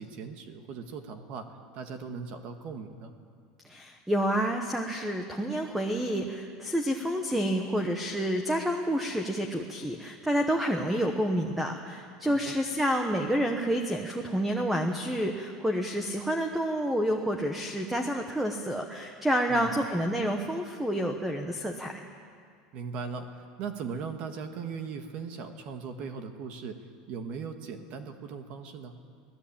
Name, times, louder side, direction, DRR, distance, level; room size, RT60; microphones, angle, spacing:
voice 1, 0.0-1.5 1.7-3.1 12.3-12.5 19.5-19.8 22.7-26.8 27.1-29.0, right 5 dB, 40° right, 7 dB, 1.5 m, -39 dB
voice 2, 3.6-21.9, equal, 5° right, 4 dB, 1.1 m, -29 dB
25.0 x 17.5 x 8.7 m, 2.2 s
supercardioid pair, 175°, 3 cm